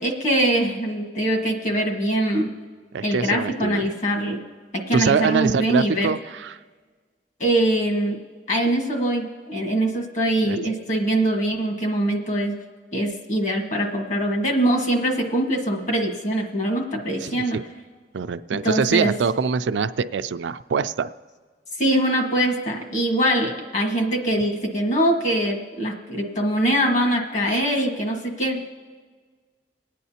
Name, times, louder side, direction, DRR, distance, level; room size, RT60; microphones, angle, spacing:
voice 1, 0.0-2.5 3.0-4.4 4.9-6.1 7.4-8.2 8.5-12.5 12.9-17.6 18.6-19.1 21.8-28.7, right 1 dB, 45° left, 2 dB, 1.6 m, -23 dB
voice 2, 2.9-3.9 4.9-6.6 10.4-10.6 17.2-17.6 18.1-21.1, right 5 dB, 85° right, 11 dB, 0.4 m, -24 dB
25.5 x 9.2 x 2.8 m, 1.5 s
head